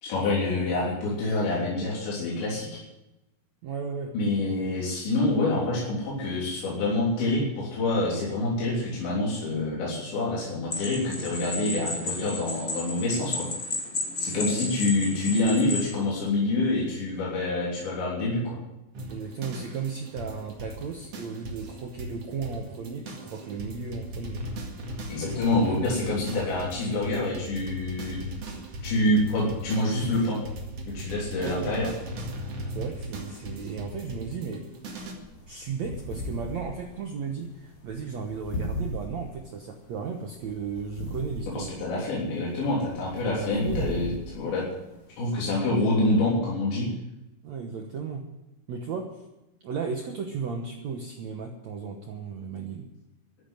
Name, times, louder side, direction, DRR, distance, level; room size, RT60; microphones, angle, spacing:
voice 1, 0.0-2.7 4.1-13.5 14.2-18.6 25.1-28.2 28.8-30.4 30.9-31.9 41.5-44.6 45.2-46.9, left 2 dB, 85° left, -6 dB, 5.7 m, -26 dB
voice 2, 3.6-4.1 14.3-15.0 19.1-24.4 31.3-31.9 32.7-34.6 35.5-41.7 43.2-44.2 47.4-48.3 48.7-49.2 49.6-52.9, right 5 dB, 85° right, 3 dB, 1.5 m, -35 dB
sound 1, 10.7-15.9, left 2 dB, 20° left, 2.3 m, -33 dB
sound 2, 18.9-35.1, right 1 dB, 45° right, 2.5 m, -38 dB
sound 3, 34.7-45.3, equal, 55° left, 5.8 m, -38 dB
14.0 x 9.5 x 9.1 m, 0.94 s
omnidirectional pair, 5.0 m